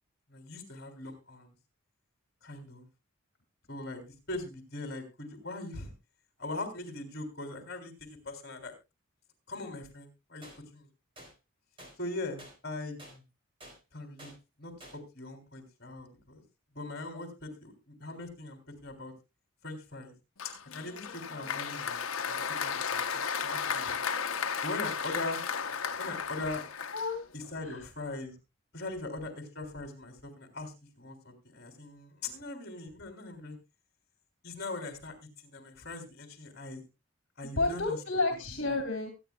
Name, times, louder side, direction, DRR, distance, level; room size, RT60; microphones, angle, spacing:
voice 1, 0.3-1.5 2.4-2.8 3.7-4.0 4.3-5.9 6.4-8.7 9.5-10.4 10.7-10.9 12.0-13.2 13.9-14.3 14.6-16.4 16.7-19.1 19.6-20.1 20.7-24.0 24.6-25.4 26.0-26.6 27.3-28.3 28.7-33.6 34.4-36.8 37.4-38.0 38.7-38.8, left 2 dB, 50° left, 5 dB, 3.5 m, -41 dB
sound 1, 10.4-10.6 11.2-11.3 11.8-11.9 12.4-12.5 13.0-13.1 13.6-13.8 14.2-14.3 14.8-15.0, right 1 dB, 25° right, 4.4 m, -49 dB
Applause, 20.4-27.5, left 6 dB, 85° left, 1.0 m, -34 dB
voice 2, 26.9-27.2 27.6-27.8 37.6-39.1, left 3 dB, 65° left, 4 dB, 2.4 m, -31 dB
23.5 x 9.4 x 2.4 m, 0.26 s
head